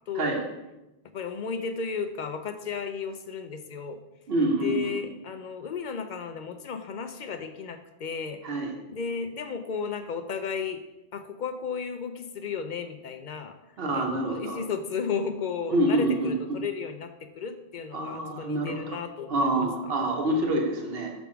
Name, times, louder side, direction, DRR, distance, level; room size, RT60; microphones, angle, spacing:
voice 1, 0.1-0.4 1.1-4.0 4.6-8.4 8.9-10.8 11.1-19.9, left 6 dB, 55° left, 9 dB, 0.6 m, -34 dB
voice 2, 4.3-5.0 8.4-8.7 13.8-14.6 15.7-16.6 17.9-19.0 19.3-21.1, right 1 dB, 65° right, 1 dB, 1.2 m, -27 dB
6.0 x 3.5 x 5.8 m, 0.99 s
omnidirectional pair, 1.1 m